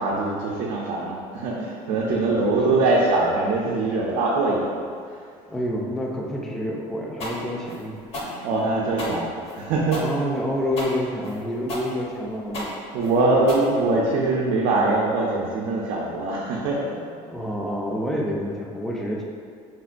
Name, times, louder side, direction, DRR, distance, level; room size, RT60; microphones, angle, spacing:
voice 1, 0.0-4.8 8.2-9.3 9.5-10.0 12.9-16.9, right 2 dB, 70° right, -5 dB, 0.5 m, -22 dB
voice 2, 2.1-2.8 5.5-8.0 10.0-12.8 17.2-19.2, equal, 5° left, -2 dB, 0.4 m, -28 dB
sound 1, 7.2-14.3, left 1 dB, 45° left, 0.7 m, -34 dB
4.2 x 2.2 x 2.4 m, 2.2 s
cardioid pair, 115°, 14 cm